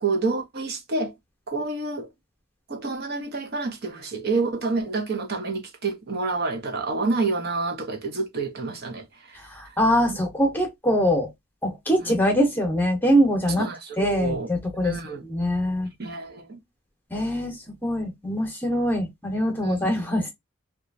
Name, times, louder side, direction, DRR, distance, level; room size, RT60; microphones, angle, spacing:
voice 1, 0.0-1.1 1.5-2.1 2.7-9.0 10.1-10.2 12.0-12.1 13.6-14.5 14.8-15.2 16.0-16.6 19.6-19.8, right 3 dB, 50° right, 0.7 m, -28 dB
voice 2, 9.6-11.3 11.6-13.7 14.0-15.0 15.2-15.9 17.1-17.6 17.8-20.3, equal, 10° left, 0.8 m, -23 dB
2.9 x 2.3 x 2.5 m
head